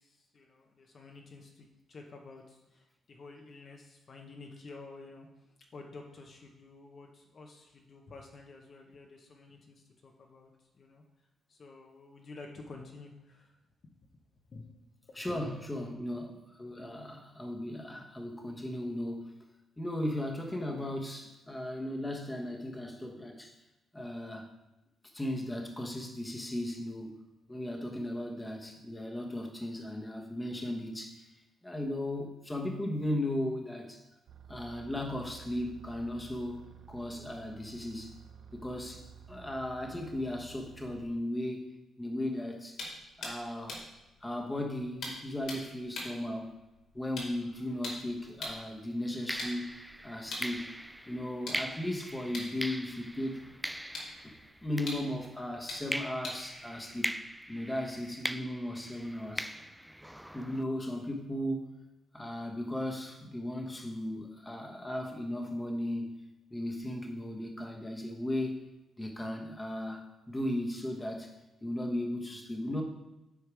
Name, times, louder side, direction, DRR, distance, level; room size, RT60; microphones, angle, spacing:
voice 1, 0.0-5.3 5.7-10.5 10.7-11.0 11.5-13.6 14.5-14.7 15.1-15.3 15.6-15.7, left 3 dB, 45° left, 1 dB, 1.0 m, -50 dB
voice 2, 15.1-19.3 19.8-23.6 23.9-24.5 25.1-27.2 27.5-31.3 31.6-34.0 34.5-38.1 38.5-41.6 42.0-42.8 43.2-43.8 44.2-46.5 46.9-49.8 50.0-50.7 51.1-53.4 54.6-57.1 57.5-59.5 60.3-61.7 62.1-66.2 66.5-68.6 69.0-71.3 71.6-72.8, left 1 dB, 10° left, 2 dB, 1.1 m, -36 dB
sound 1, 34.3-41.1, right 7 dB, 70° right, 0.6 m, -52 dB
sound 2, 42.8-48.7 49.2-57.7, left 2 dB, 75° left, 2.2 m, -45 dB
sound 3, 48.1-48.4 49.3-55.5 55.9-60.6, equal, 5° right, 0.3 m, -41 dB
8.2 x 4.6 x 4.8 m, 0.98 s
cardioid pair, 120°, 0 cm